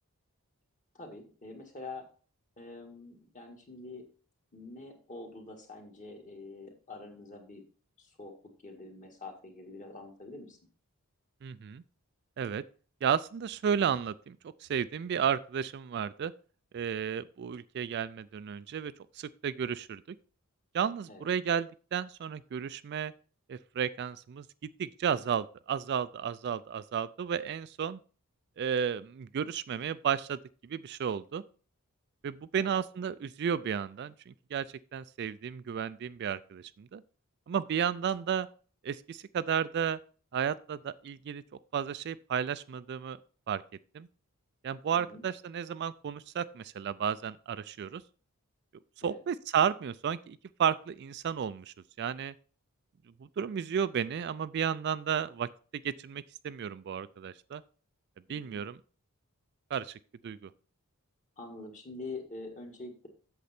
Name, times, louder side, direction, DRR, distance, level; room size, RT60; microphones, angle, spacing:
voice 1, 0.9-2.1 2.6-4.1 4.5-7.6 8.0-8.3 8.6-10.6 21.1-21.3 32.5-32.7 44.9-45.2 49.0-49.2 58.3-58.6 61.4-63.1, left 3 dB, 35° left, 2 dB, 1.9 m, -45 dB
voice 2, 11.4-11.8 12.4-12.6 13.0-14.4 14.6-16.3 16.7-20.2 20.7-23.1 23.5-28.0 28.6-30.4 30.7-31.4 32.2-34.7 34.9-37.0 37.5-38.5 38.8-40.0 40.3-41.4 41.7-43.2 43.5-43.6 43.9-44.1 44.6-48.0 49.0-52.3 53.4-55.5 55.8-57.6 58.3-58.8 59.7-60.0 60.2-60.5, right 8 dB, 50° right, 15 dB, 0.3 m, -33 dB
8.3 x 6.7 x 4.3 m, 0.39 s
head